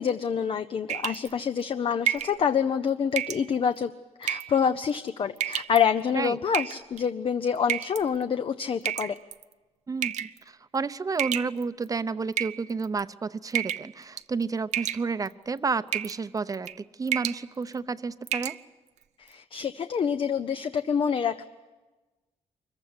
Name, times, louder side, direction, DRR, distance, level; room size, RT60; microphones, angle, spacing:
voice 1, 0.0-3.9 4.2-9.2 19.2-21.4, left 7 dB, 50° left, 10 dB, 0.7 m, -27 dB
Dripping tap slowly into a large saucepan, 0.9-1.3 2.1-2.4 3.2-3.4 4.2-4.6 5.4-5.8 6.5-7.0 7.7-8.0 8.9-9.4 10.0-10.4 11.2-11.8 12.3-13.0 13.5-13.9 14.2-14.4 14.7-15.3 15.9-16.2 16.5-16.8 17.1-17.4 17.8-17.9 18.3-18.6, right 10 dB, 80° right, 0.6 m, -30 dB
voice 2, 9.9-18.6, right 4 dB, 30° right, 13 dB, 0.7 m, -31 dB
24.0 x 15.0 x 9.6 m, 1.2 s
cardioid pair, 95°, 12 cm